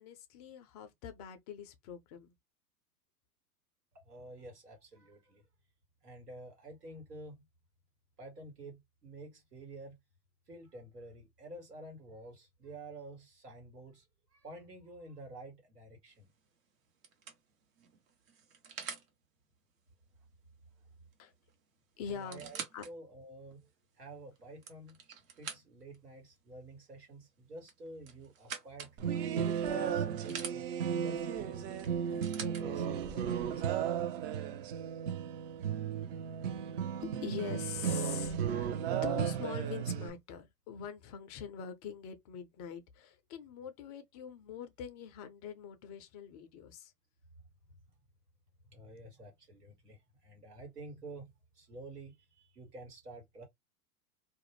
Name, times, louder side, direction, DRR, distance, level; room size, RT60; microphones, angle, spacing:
voice 1, 0.0-2.3 21.2-21.3 22.0-22.4 22.7-22.9 37.2-46.9, left 8 dB, 30° left, 0.4 m, -44 dB
voice 2, 3.9-5.4 6.0-7.5 8.2-10.0 10.5-16.3 22.0-23.7 24.0-25.0 25.4-29.3 29.6-31.6 32.0-33.9 35.7-35.8 48.6-53.5, right 2 dB, 90° right, 1.5 m, -50 dB
sound 1, 16.1-16.4 17.0-19.1 21.1-21.2 21.5-21.6 22.1-22.9 23.5-23.6 24.4-26.0 27.6-29.0 29.6-30.6 31.8-32.6 33.6-33.7, right 6 dB, 60° right, 1.1 m, -45 dB
sound 2, 29.0-40.1, right 8 dB, 45° right, 0.6 m, -34 dB
2.4 x 2.0 x 3.0 m
hypercardioid pair, 100°, 46 cm